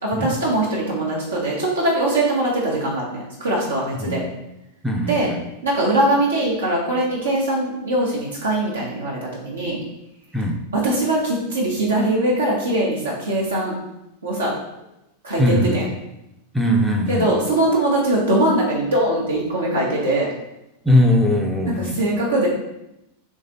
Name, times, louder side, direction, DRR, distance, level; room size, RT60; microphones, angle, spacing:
voice 1, 0.0-4.2 5.0-5.3 5.6-9.8 10.7-13.8 14.2-14.5 15.2-15.9 17.1-20.3 21.7-22.5, right 1 dB, 70° right, -4 dB, 1.0 m, -21 dB
voice 2, 4.8-5.4 10.3-10.6 15.4-15.8 16.5-17.3 20.8-22.0, left 1 dB, ahead, 0 dB, 0.5 m, -19 dB
3.9 x 3.2 x 3.9 m, 0.89 s
figure-of-eight pair, 90°, 0 cm